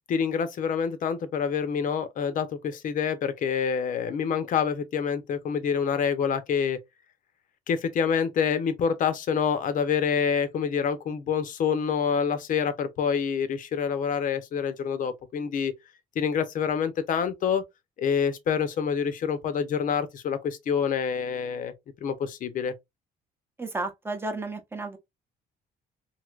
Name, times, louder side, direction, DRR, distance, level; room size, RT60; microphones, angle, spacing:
voice 1, 0.1-6.8 7.7-15.7 16.2-17.6 18.0-21.7 22.0-22.7, left 7 dB, 50° left, 0.7 m, -27 dB
voice 2, 23.6-25.0, right 2 dB, 15° right, 0.7 m, -32 dB
3.2 x 2.8 x 2.4 m
cardioid pair, 110°, 17 cm